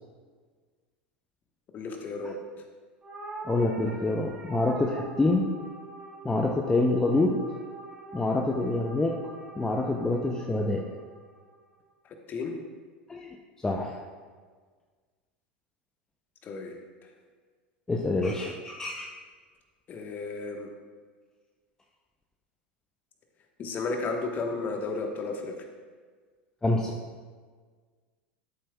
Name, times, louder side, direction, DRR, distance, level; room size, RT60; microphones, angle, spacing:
voice 1, 1.7-2.4 12.0-12.5 16.4-17.1 19.9-20.7 23.6-25.5, left 3 dB, 30° left, 3 dB, 1.2 m, -33 dB
sound 1, 3.0-11.6, right 3 dB, 20° right, 2.6 m, -44 dB
voice 2, 3.4-5.5 6.2-7.4 8.1-9.2 9.6-10.9 13.1-14.1 17.9-19.1 26.6-27.0, left 2 dB, 10° left, 1 dB, 0.6 m, -27 dB
12.5 x 7.6 x 2.3 m, 1.5 s
figure-of-eight pair, 80°, 6 cm